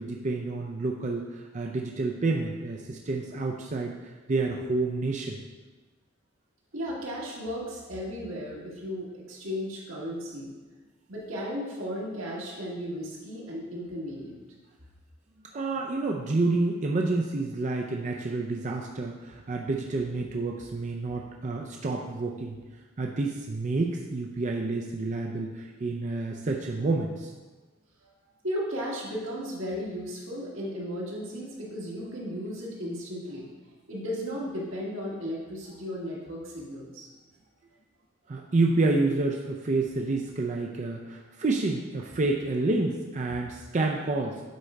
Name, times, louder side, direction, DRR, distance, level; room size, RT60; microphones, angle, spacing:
voice 1, 0.0-5.4 15.5-22.6 23.0-27.3 38.3-44.4, right 3 dB, 35° right, 0 dB, 0.4 m, -29 dB
voice 2, 6.7-10.5 11.1-14.4 28.4-33.5 33.9-37.1, equal, 85° right, -4 dB, 1.8 m, -35 dB
8.3 x 3.7 x 4.4 m, 1.2 s
head